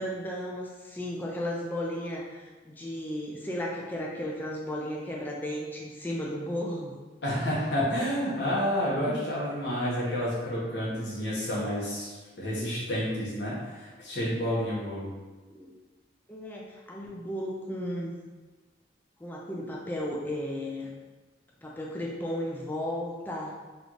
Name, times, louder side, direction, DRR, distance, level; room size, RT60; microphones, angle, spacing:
voice 1, 0.0-6.9 15.5-15.7 16.3-18.1 19.2-20.9 21.6-23.5, left 1 dB, 10° left, -3 dB, 0.4 m, -34 dB
voice 2, 7.2-15.1, equal, 65° left, -7 dB, 1.2 m, -30 dB
3.4 x 3.0 x 3.8 m, 1.3 s
head